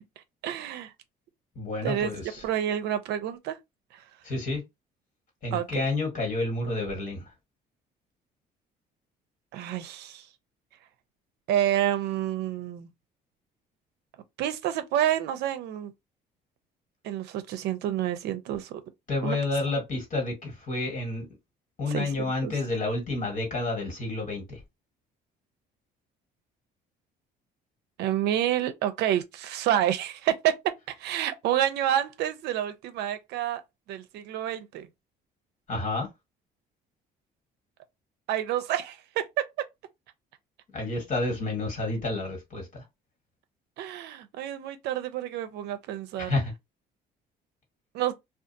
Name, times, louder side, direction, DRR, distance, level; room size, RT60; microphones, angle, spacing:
voice 1, 0.4-0.9 1.8-2.1 2.4-3.6 3.9-4.0 5.5-5.7 9.5-10.3 11.5-12.9 14.4-15.9 17.0-18.8 19.2-19.4 21.9-22.5 28.0-33.6 33.9-34.9 38.3-39.7 43.8-46.3 47.9-48.1, right 11 dB, 80° right, 0.5 m, -29 dB
voice 2, 1.5-2.4 4.2-4.6 5.4-7.3 19.1-21.3 21.8-24.6 35.7-36.1 40.7-42.8 46.2-46.5, left 2 dB, 50° left, 1.5 m, -30 dB
2.5 x 2.3 x 2.6 m
cardioid pair, 110°, 17 cm